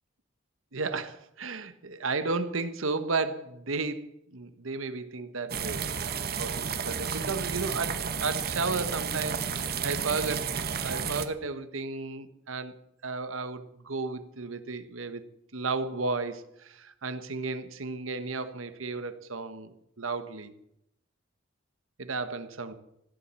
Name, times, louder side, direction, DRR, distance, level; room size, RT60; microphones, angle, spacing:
voice 1, 0.7-5.9 6.4-10.5 10.8-12.8 13.0-15.3 15.5-20.5 22.0-22.7, right 3 dB, 90° right, 1.2 m, -33 dB
sound 1, 5.5-11.3, right 6 dB, 50° right, 1.1 m, -32 dB
15.5 x 8.9 x 7.5 m
head